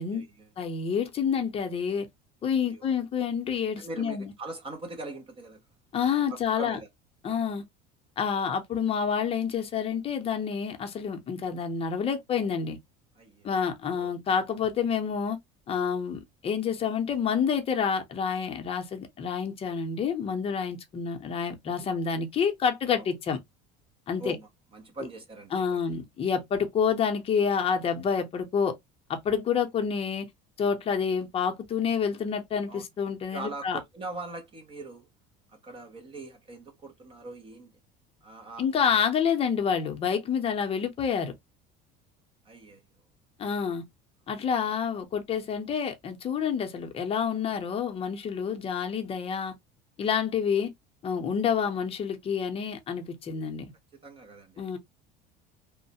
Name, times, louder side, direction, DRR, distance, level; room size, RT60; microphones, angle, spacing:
voice 1, 0.0-0.5 2.6-2.9 3.8-5.6 6.3-6.9 13.2-13.5 14.0-14.1 22.9-23.1 24.2-25.8 32.7-32.8 33.3-35.1 35.5-37.7 38.2-38.6 42.4-42.8 53.9-54.8, right 2 dB, 25° right, 0.5 m, -41 dB
voice 2, 0.6-2.1 2.4-4.3 5.9-6.8 7.2-7.6 8.2-12.8 13.4-15.4 15.7-23.4 24.1-24.4 25.5-28.8 29.1-30.3 30.6-33.8 38.6-41.3 43.4-43.8 44.3-49.5 50.0-50.7 51.0-53.7 54.6-54.8, left 6 dB, 30° left, 0.6 m, -28 dB
3.1 x 2.0 x 2.7 m
cardioid pair, 140°, 21 cm